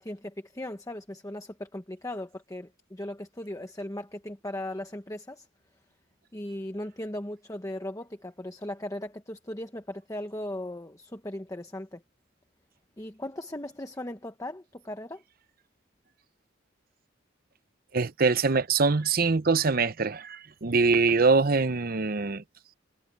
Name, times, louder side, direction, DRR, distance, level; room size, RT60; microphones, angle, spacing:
voice 1, 0.0-5.5 6.3-12.0 13.0-15.2, left 1 dB, 15° left, 1.2 m, -38 dB
voice 2, 17.9-22.4, right 4 dB, 50° right, 0.8 m, -24 dB
head